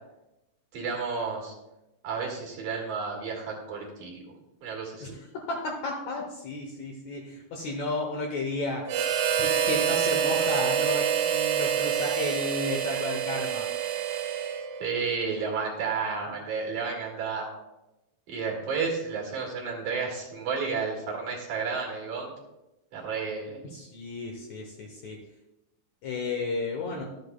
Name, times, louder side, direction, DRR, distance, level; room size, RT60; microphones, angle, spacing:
voice 1, 0.7-1.5 2.0-4.2 4.6-5.1 14.8-17.5 18.3-22.3 22.9-23.6, right 5 dB, 65° right, -1 dB, 3.1 m, -31 dB
voice 2, 5.0-8.8 9.4-13.6 23.6-25.2 26.0-27.0, left 2 dB, 70° left, 1 dB, 1.8 m, -33 dB
Harmonica, 8.9-14.9, right 8 dB, 80° right, 1.8 m, -27 dB
13.0 x 8.0 x 2.2 m, 0.96 s
omnidirectional pair, 4.1 m